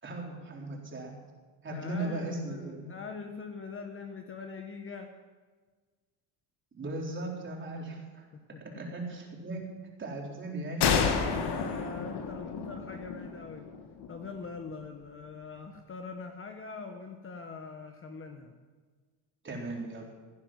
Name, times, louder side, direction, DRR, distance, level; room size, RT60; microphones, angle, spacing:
voice 1, 0.0-1.1 1.6-2.9 6.7-8.3 8.6-9.6 10.0-11.1 11.8-12.0 19.4-20.1, right 2 dB, 25° right, -1 dB, 4.0 m, -37 dB
voice 2, 1.7-5.1 8.3-9.0 10.8-13.7 14.1-18.5, left 4 dB, 25° left, 5 dB, 1.2 m, -43 dB
sound 1, 10.8-14.3, left 6 dB, 55° left, 1.8 m, -30 dB
16.5 x 9.9 x 7.6 m, 1.4 s
cardioid pair, 135°, 47 cm